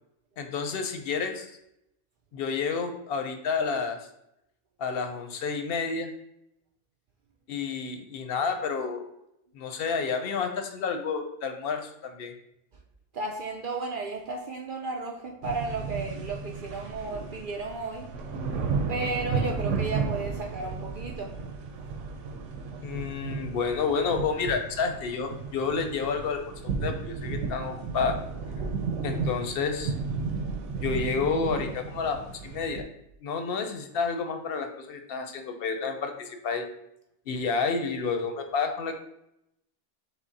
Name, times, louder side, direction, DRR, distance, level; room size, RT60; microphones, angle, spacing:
voice 1, 0.4-1.5 2.3-4.0 4.8-6.1 7.5-9.1 9.5-12.3 22.8-26.4 26.8-28.2 29.0-29.9 30.8-32.9 33.2-36.6 37.3-38.9, left 5 dB, 60° left, 6 dB, 0.8 m, -30 dB
voice 2, 13.1-18.1 18.9-21.4, right 3 dB, 55° right, 1 dB, 0.6 m, -33 dB
sound 1, 15.4-32.8, right 4 dB, 90° right, 1.0 m, -33 dB
6.0 x 2.0 x 4.0 m, 0.79 s
omnidirectional pair, 1.2 m